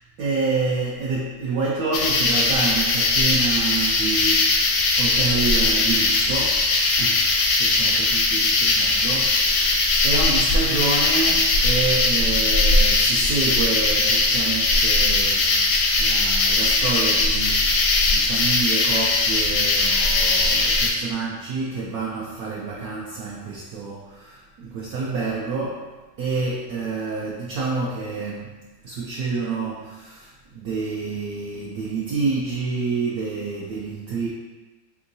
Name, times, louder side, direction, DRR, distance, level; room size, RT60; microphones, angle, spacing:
voice 1, 0.2-6.7 7.0-9.8 10.0-25.9 26.2-34.3, right 4 dB, 70° right, -4 dB, 1.0 m, -28 dB
sound 1, 1.9-20.9, left 3 dB, 70° left, 0.8 m, -20 dB
3.8 x 3.6 x 2.6 m, 1.2 s
omnidirectional pair, 1.8 m